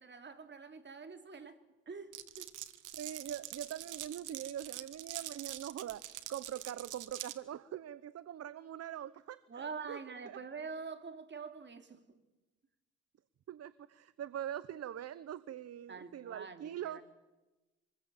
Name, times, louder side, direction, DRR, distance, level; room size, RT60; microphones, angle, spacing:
voice 1, 0.0-1.6 1.9-2.6 9.5-12.2 15.9-17.0, right 5 dB, 35° right, 3.1 m, -46 dB
Glass, 2.1-7.4, right 13 dB, 85° right, 1.5 m, -45 dB
voice 2, 2.9-10.0 10.3-10.4 13.5-17.0, right 10 dB, 55° right, 0.9 m, -43 dB
26.5 x 21.0 x 8.8 m
cardioid pair, 90°, 30 cm